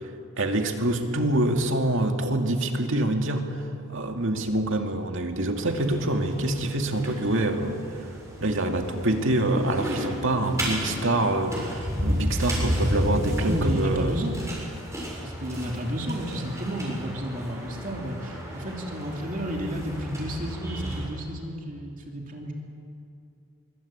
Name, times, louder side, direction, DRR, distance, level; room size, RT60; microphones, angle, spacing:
voice 1, 0.4-3.6 3.9-8.0 8.4-14.1, right 1 dB, 60° right, 4 dB, 2.4 m, -26 dB
sound 1, 5.6-21.1, equal, 15° right, 6.9 m, -32 dB
voice 2, 13.3-14.4 15.2-22.5, right 1 dB, 40° right, 0 dB, 3.2 m, -32 dB
25.0 x 23.5 x 8.8 m, 2.5 s
head